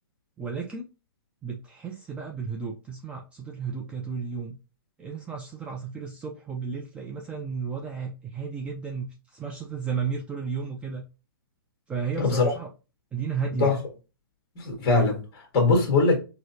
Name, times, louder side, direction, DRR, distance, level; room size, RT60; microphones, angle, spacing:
voice 1, 0.4-0.9 1.4-4.6 5.0-11.0 11.9-12.7 13.1-13.8, right 5 dB, 10° right, 0.3 m, -33 dB
voice 2, 12.2-12.5 13.6-13.8 14.5-16.1, left 3 dB, 30° left, 1.4 m, -22 dB
4.6 x 2.0 x 2.7 m
hypercardioid pair, 135°, 13 cm